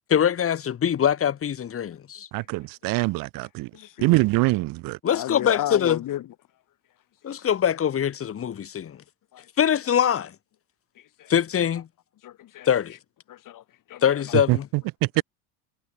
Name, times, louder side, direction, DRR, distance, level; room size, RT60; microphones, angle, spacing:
voice 1, 0.1-2.3 5.0-6.0 7.2-9.0 9.6-10.3 11.3-11.9 12.7-13.0 14.0-14.7, left 9 dB, 30° left, 2.8 m, -23 dB
voice 2, 2.3-3.7 4.0-5.0 14.5-14.6 15.0-15.2, right 22 dB, 50° right, 0.8 m, -23 dB
voice 3, 3.7-4.2 5.1-6.2 7.4-7.5 9.3-9.5 11.0-11.3 12.2-12.7 13.3-14.0, left 13 dB, 45° left, 7.1 m, -34 dB
supercardioid pair, 110°, 44 cm